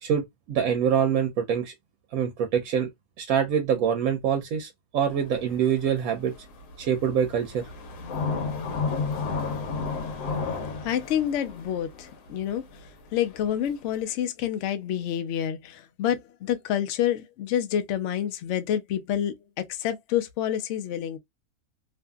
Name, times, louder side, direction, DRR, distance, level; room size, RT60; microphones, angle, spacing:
voice 1, 0.0-1.7 2.1-2.9 3.2-6.3 6.8-7.7, right 8 dB, 70° right, 0.9 m, -25 dB
sound 1, 5.1-14.0, left 4 dB, 90° left, 1.3 m, -33 dB
voice 2, 10.8-21.2, left 10 dB, 70° left, 0.7 m, -28 dB
2.7 x 2.5 x 2.2 m
omnidirectional pair, 1.7 m